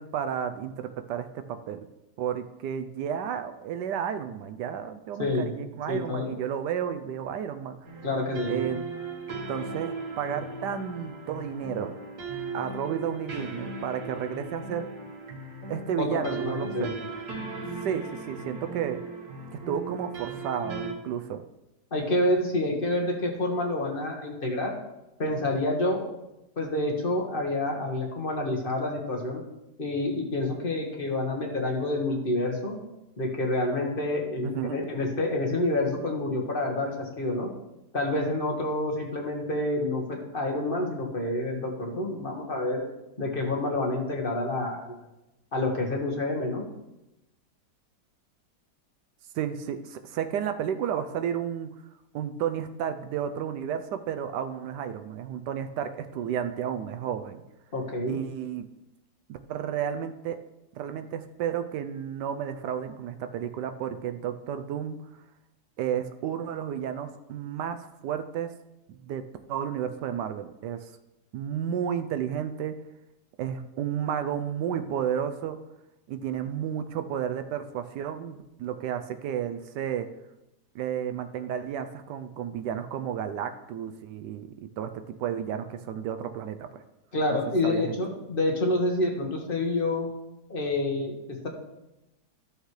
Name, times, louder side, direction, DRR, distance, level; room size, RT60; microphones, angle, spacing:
voice 1, 0.0-1.9 2.2-7.8 8.5-8.8 9.5-12.0 12.5-14.9 15.7-16.9 17.8-19.0 19.7-21.4 34.4-34.8 49.3-51.7 52.1-57.4 58.1-58.6 59.3-60.4 60.8-65.0 65.8-68.5 68.9-69.2 69.5-70.9 71.3-72.7 73.4-75.6 76.1-80.1 80.7-86.7 87.6-87.9, right 9 dB, 80° right, 8 dB, 1.2 m, -32 dB
voice 2, 5.2-5.5 5.9-6.3 8.0-8.6 16.0-16.9 21.9-24.7 25.2-26.1 26.6-29.4 29.8-32.8 33.2-37.5 37.9-42.8 43.2-45.0 45.5-46.6 57.7-58.2 87.1-90.1 90.5-91.5, left 2 dB, 35° left, 0 dB, 1.7 m, -28 dB
sound 1, 7.8-20.9, right 3 dB, 65° right, 1.9 m, -37 dB
14.0 x 6.5 x 3.2 m, 0.93 s
omnidirectional pair, 1.8 m